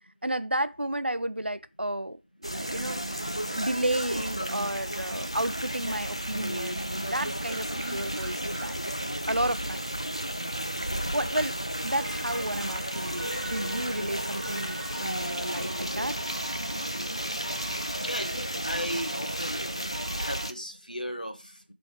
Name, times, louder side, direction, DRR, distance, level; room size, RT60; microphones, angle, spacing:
voice 1, 0.2-2.2 2.5-3.2 3.5-8.7 9.3-9.9 11.1-16.2, right 1 dB, 80° right, 0.6 m, -32 dB
sound 1, 2.4-20.5, equal, 30° left, 0.5 m, -33 dB
sound 2, 3.1-18.7, right 1 dB, 20° right, 1.8 m, -55 dB
sound 3, 11.9-20.5, equal, 60° right, 1.1 m, -43 dB
voice 2, 17.9-19.7 20.1-21.6, equal, 50° left, 1.4 m, -36 dB
10.5 x 4.4 x 4.8 m
figure-of-eight pair, 180°, 6 cm